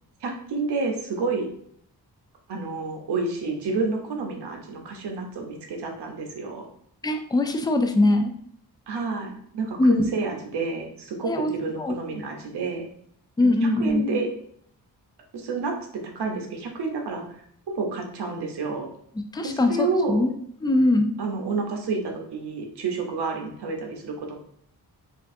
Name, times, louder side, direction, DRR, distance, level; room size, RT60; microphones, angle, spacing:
voice 1, 0.2-1.5 2.5-6.7 8.9-12.9 13.4-13.5 13.8-14.3 15.3-15.7 16.1-17.4 17.7-18.9 19.4-20.2 21.2-24.4, right 4 dB, 85° right, 2 dB, 0.8 m, -29 dB
voice 2, 7.0-8.3 9.8-10.1 11.2-11.5 11.8-11.9 13.4-14.1 19.3-20.3 20.6-21.1, left 2 dB, 10° left, 5 dB, 0.3 m, -21 dB
4.5 x 2.5 x 2.6 m, 0.66 s
wide cardioid pair, 115°, 39 cm